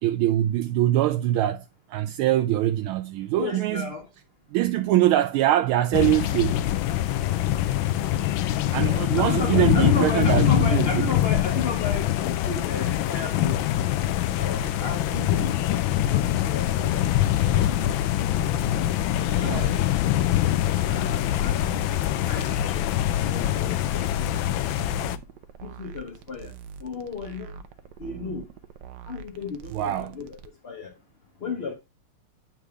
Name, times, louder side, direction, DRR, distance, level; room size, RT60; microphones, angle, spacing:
voice 1, 0.0-1.6 1.9-3.9 4.5-6.5 8.7-11.0 19.4-19.7 29.7-30.2, right 14 dB, 85° right, 1.4 m, -23 dB
voice 2, 3.4-4.1 9.2-13.7 14.3-16.9 17.5-17.9 19.4-19.8 20.9-21.6 22.3-22.9 23.2-24.8 25.6-26.5 26.8-27.5 28.0-28.5 29.1-30.4 30.6-30.9 31.4-31.8, left 4 dB, 40° left, 0.9 m, -34 dB
sound 1, 5.9-25.2, left 13 dB, 80° left, 1.3 m, -24 dB
sound 2, 14.6-30.5, right 7 dB, 70° right, 1.1 m, -43 dB
9.5 x 3.4 x 4.8 m
omnidirectional pair, 2.3 m